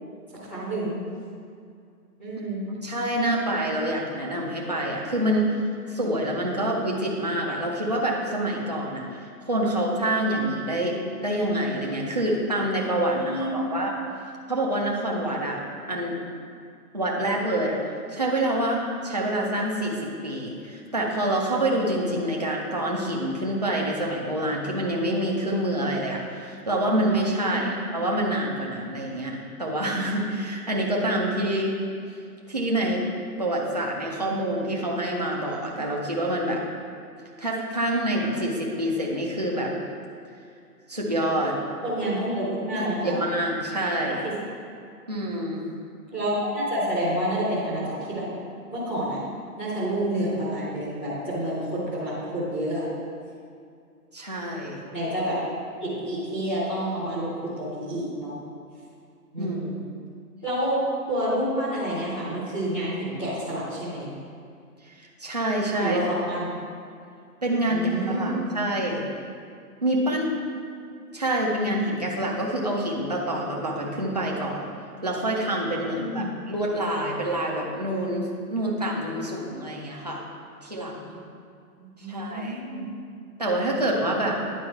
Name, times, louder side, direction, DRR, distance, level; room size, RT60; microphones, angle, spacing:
voice 1, 0.4-1.0 2.2-2.6 13.2-13.8 27.4-27.7 41.8-43.1 44.2-44.3 46.1-48.2 48.7-49.2 49.6-52.9 54.9-55.4 55.8-58.4 59.3-59.8 60.4-60.8 61.1-64.1 65.8-66.5 67.7-68.4 75.9-76.3 82.0-82.8, right 1 dB, 5° left, -12 dB, 0.7 m, -29 dB
voice 2, 2.8-5.5 5.9-13.9 14.5-15.6 15.9-16.2 16.9-17.8 18.1-31.8 32.5-33.0 33.4-36.6 37.4-39.7 40.9-41.6 42.7-44.2 45.1-45.7 54.1-54.8 59.4-59.6 64.9-66.0 67.4-69.0 69.8-70.3 71.1-74.7 75.0-80.2 80.6-81.2 82.0-82.6 83.4-84.4, right 1 dB, 30° right, -3 dB, 0.4 m, -27 dB
9.5 x 4.2 x 4.5 m, 2.4 s
hypercardioid pair, 175°, 46 cm